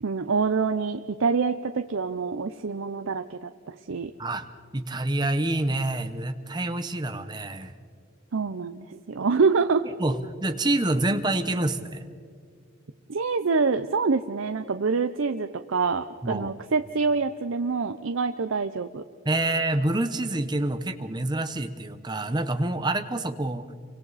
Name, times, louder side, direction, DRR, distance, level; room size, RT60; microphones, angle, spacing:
voice 1, 0.0-4.1 8.3-9.9 13.1-19.0, right 4 dB, 80° right, 8 dB, 0.6 m, -26 dB
voice 2, 4.7-7.7 10.0-12.0 16.2-16.5 19.2-23.7, right 2 dB, 20° right, 8 dB, 0.9 m, -27 dB
28.5 x 24.5 x 4.1 m, 2.1 s
head